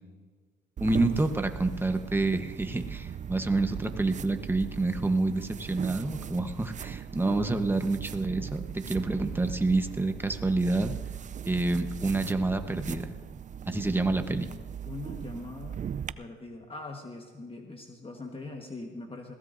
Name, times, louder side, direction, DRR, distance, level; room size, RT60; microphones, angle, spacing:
voice 1, 0.8-10.9 11.5-13.1 13.6-14.5, right 2 dB, 10° right, 7 dB, 1.1 m, -28 dB
sound 1, 0.8-16.1, right 8 dB, 40° right, 0.5 m, -39 dB
voice 2, 14.8-15.8 16.2-19.3, left 2 dB, 30° left, 2 dB, 1.4 m, -41 dB
21.0 x 16.5 x 2.7 m, 1.5 s
cardioid pair, 90°, 20 cm